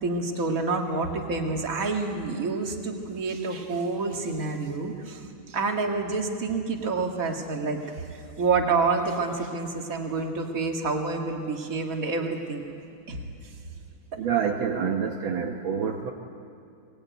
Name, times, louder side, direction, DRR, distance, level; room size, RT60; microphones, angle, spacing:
voice 1, 0.0-7.8 8.1-12.6 13.1-13.2, right 4 dB, 40° right, 3 dB, 2.2 m, -28 dB
voice 2, 14.1-16.1, right 7 dB, 65° right, 2 dB, 1.9 m, -27 dB
22.5 x 19.0 x 9.4 m, 2.4 s
omnidirectional pair, 2.4 m